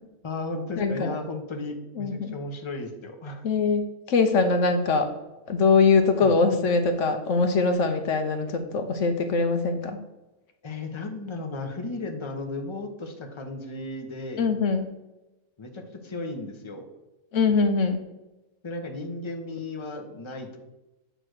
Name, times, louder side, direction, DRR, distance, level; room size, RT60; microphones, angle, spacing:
voice 1, 0.2-3.5 6.2-6.3 10.6-14.4 15.6-16.9 18.6-20.6, left 2 dB, 25° left, 4 dB, 0.8 m, -35 dB
voice 2, 0.8-1.1 2.0-2.4 3.4-5.1 5.5-10.0 14.4-14.9 17.3-18.0, left 4 dB, 65° left, 7 dB, 1.0 m, -22 dB
8.5 x 3.3 x 6.2 m, 1.0 s
omnidirectional pair, 1.5 m